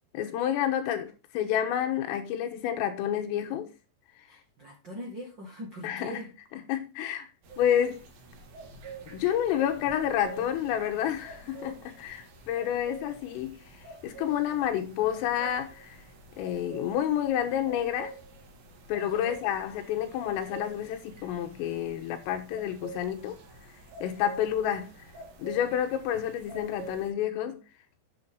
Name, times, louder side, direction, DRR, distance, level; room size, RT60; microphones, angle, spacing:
voice 1, 0.1-3.7 5.8-6.2 6.5-7.3 7.6-8.1 9.1-16.0 16.4-18.1 18.9-23.4 24.0-24.9 25.4-27.6, left 10 dB, 85° left, 3.8 m, -29 dB
voice 2, 4.3-6.3 19.0-19.5, equal, 80° right, 1.0 m, -42 dB
sound 1, 7.4-27.1, right 2 dB, 55° right, 3.4 m, -47 dB
9.5 x 8.1 x 3.8 m
omnidirectional pair, 5.8 m